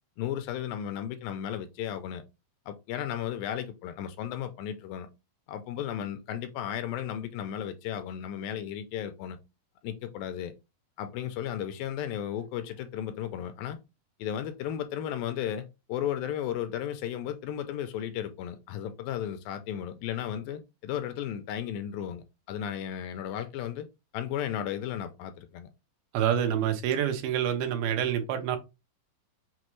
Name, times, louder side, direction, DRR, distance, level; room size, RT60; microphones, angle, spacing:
voice 1, 0.2-2.2 2.7-5.1 5.5-9.4 9.8-10.5 11.0-13.8 14.2-23.9 24.1-25.7, left 10 dB, 80° left, 2.1 m, -34 dB
voice 2, 26.1-28.6, right 9 dB, 85° right, 2.6 m, -27 dB
6.2 x 2.3 x 3.0 m
omnidirectional pair, 4.2 m